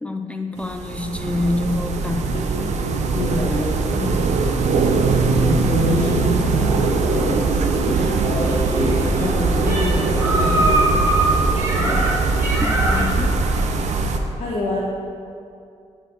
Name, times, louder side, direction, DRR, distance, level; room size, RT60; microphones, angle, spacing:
voice 1, 0.0-2.3 7.9-8.5 12.6-13.4, left 2 dB, 10° left, 5 dB, 0.3 m, -27 dB
sound 1, 0.6-14.2, right 3 dB, 75° right, 0.6 m, -21 dB
voice 2, 2.3-2.7 3.1-4.2 5.2-7.7 8.7-12.5 14.4-14.8, left 2 dB, 70° left, -8 dB, 1.4 m, -28 dB
sound 2, 8.2-13.2, right 1 dB, 20° right, 1.9 m, -23 dB
6.3 x 4.5 x 6.5 m, 2.4 s
wide cardioid pair, 140°, 12 cm